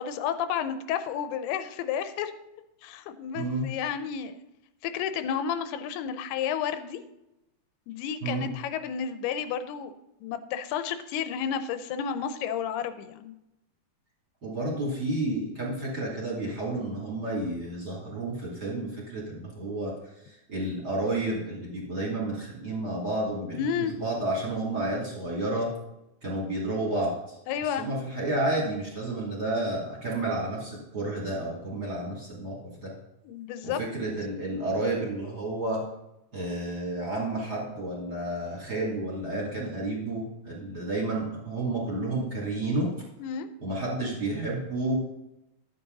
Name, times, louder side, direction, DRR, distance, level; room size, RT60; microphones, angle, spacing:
voice 1, 0.0-2.3 2.8-4.4 4.8-7.0 7.9-9.9 10.2-13.3 23.5-23.9 27.5-27.9 33.3-33.8 43.2-43.5, left 8 dB, 85° left, 10 dB, 2.7 m, -31 dB
voice 2, 3.3-3.7 8.2-8.5 14.4-19.9 20.2-25.7 26.2-27.4 27.8-32.9 33.6-35.8 36.3-42.9 43.6-45.0, right 2 dB, 25° right, -3 dB, 2.9 m, -31 dB
12.0 x 8.7 x 4.0 m, 0.89 s
omnidirectional pair, 4.6 m